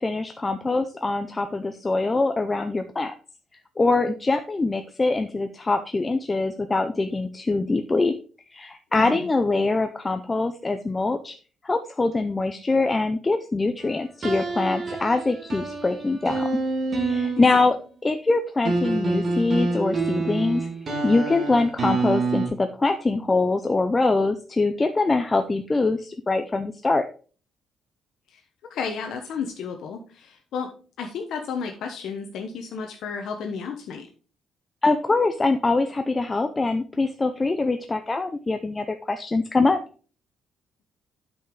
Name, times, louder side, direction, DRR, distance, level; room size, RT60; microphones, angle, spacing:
voice 1, 0.0-3.1 3.8-8.1 8.5-11.4 11.6-16.5 17.0-17.8 18.0-20.7 21.0-27.0 34.8-39.8, left 3 dB, 15° left, 7 dB, 0.5 m, -23 dB
voice 2, 8.9-9.3 17.5-17.7 28.3-28.4 28.7-30.7 31.0-34.1, left 5 dB, 65° left, 3 dB, 1.1 m, -32 dB
sound 1, 14.2-17.7 18.7-22.5, right 3 dB, 35° right, 2.1 m, -27 dB
9.0 x 5.5 x 3.8 m, 0.38 s
cardioid pair, 160°, 0 cm